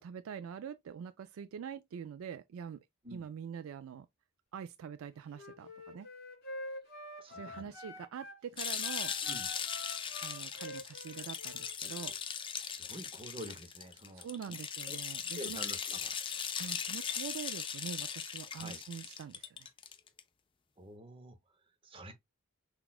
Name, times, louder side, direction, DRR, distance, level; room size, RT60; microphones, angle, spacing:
voice 1, 0.0-2.9 3.1-4.1 4.5-6.1 7.3-9.1 10.2-12.2 14.1-15.6 16.6-19.7, right 7 dB, 65° right, 0.3 m, -44 dB
Wind instrument woodwind instrument, 5.3-8.4 8.8-12.2, left 1 dB, 50° left, 2.9 m, -47 dB
voice 2, 7.2-7.6 9.2-9.5 12.6-14.6 14.9-15.0 15.4-16.1 18.6-18.8 20.8-21.4 21.8-22.1, equal, 25° right, 0.7 m, -47 dB
sound 1, 8.6-20.2, left 7 dB, 25° left, 0.4 m, -39 dB
5.9 x 2.3 x 2.2 m
head